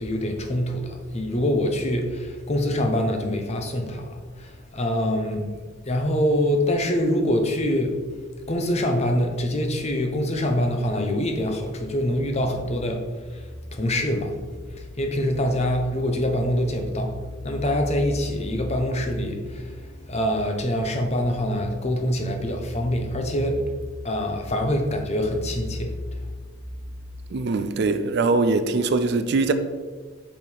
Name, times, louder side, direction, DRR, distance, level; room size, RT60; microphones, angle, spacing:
voice 1, 0.0-4.1 4.4-5.5 5.8-8.0 8.5-13.1 13.3-14.3 14.7-17.2 17.4-23.6 24.0-25.9, left 1 dB, 30° left, 0.8 m, -25 dB
voice 2, 27.3-29.5, right 3 dB, 55° right, 0.4 m, -22 dB
5.5 x 5.0 x 4.6 m
head